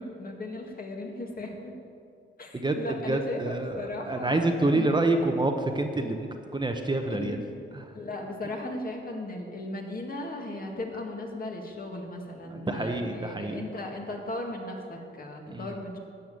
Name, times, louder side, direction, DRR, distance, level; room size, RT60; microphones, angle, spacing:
voice 1, 0.0-1.7 2.4-5.0 5.3-5.4 7.1-7.5 7.9-16.0, left 2 dB, 45° left, 1 dB, 2.0 m, -37 dB
voice 2, 3.1-3.7 4.1-7.4 12.5-13.6 15.5-15.7, right 2 dB, 20° right, 4 dB, 0.9 m, -27 dB
12.5 x 6.9 x 9.0 m, 2.5 s
wide cardioid pair, 110°, 21 cm